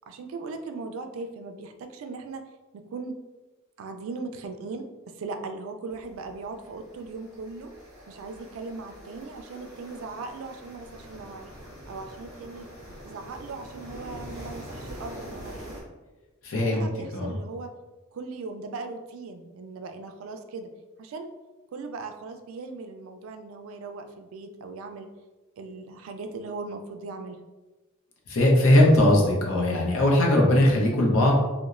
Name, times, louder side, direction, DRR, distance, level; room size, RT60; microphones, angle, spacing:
voice 1, 0.1-2.4 2.7-3.2 3.8-7.7 8.1-11.5 11.9-12.7 13.0-15.6 16.6-17.7 18.1-20.7 21.0-21.3 21.7-25.1 25.6-27.4, right 3 dB, 75° right, 7 dB, 0.3 m, -38 dB
sound 1, 5.9-15.8, equal, 15° right, 1.0 m, -44 dB
voice 2, 16.4-16.8 17.1-17.3 28.3-31.4, left 1 dB, 75° left, -1 dB, 0.6 m, -19 dB
2.9 x 2.0 x 2.4 m, 1.2 s
head